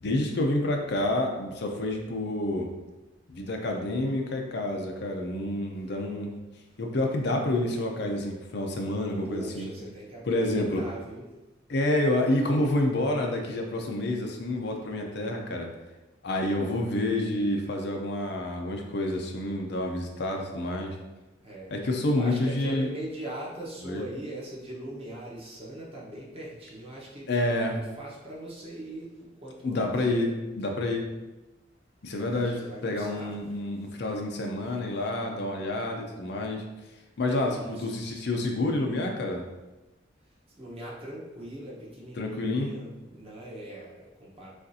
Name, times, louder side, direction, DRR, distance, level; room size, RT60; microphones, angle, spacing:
voice 1, 0.0-2.7 3.3-6.3 6.8-9.7 10.2-10.8 11.7-15.7 16.2-21.0 21.7-22.9 23.8-24.0 27.3-27.7 29.6-31.1 32.0-36.6 37.2-39.4 42.2-42.7, left 1 dB, 60° left, 2 dB, 0.6 m, -28 dB
voice 2, 9.2-11.3 16.3-16.7 21.4-30.3 32.3-34.0 34.6-35.1 37.4-37.9 40.5-44.5, right 1 dB, 30° right, -5 dB, 1.1 m, -41 dB
6.3 x 2.5 x 2.8 m, 1.0 s
head